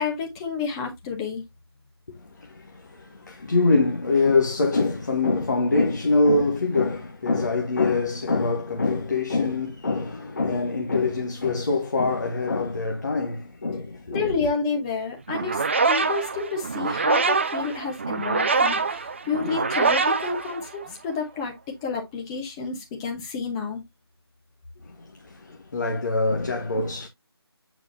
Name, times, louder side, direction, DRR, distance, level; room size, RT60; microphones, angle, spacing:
voice 1, 0.0-1.4 14.1-21.5 21.8-23.8, left 5 dB, 10° left, 1.2 m, -30 dB
voice 2, 2.1-14.5 24.8-27.1, left 3 dB, 45° left, 1.6 m, -24 dB
sound 1, 15.3-21.1, right 4 dB, 30° right, 0.5 m, -24 dB
8.6 x 4.9 x 2.7 m
figure-of-eight pair, 155°, 14 cm